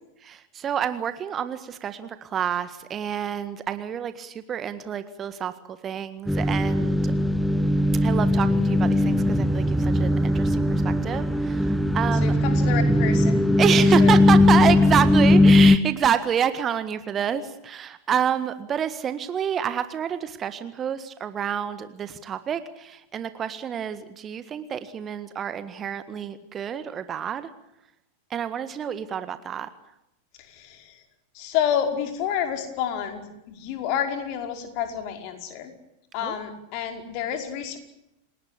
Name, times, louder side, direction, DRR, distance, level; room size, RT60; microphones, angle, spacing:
voice 1, 0.2-7.1 8.0-12.3 13.6-27.5 28.3-29.7 36.2-36.3, right 8 dB, 25° right, 12 dB, 1.6 m, -28 dB
sound 1, 6.3-15.8, left 1 dB, ahead, 1.1 m, -19 dB
voice 2, 12.2-13.4 13.8-14.1 30.4-31.0 31.3-35.7 36.1-37.8, left 9 dB, 45° left, 5 dB, 5.2 m, -29 dB
29.0 x 18.5 x 8.4 m, 0.85 s
figure-of-eight pair, 90°, 0 cm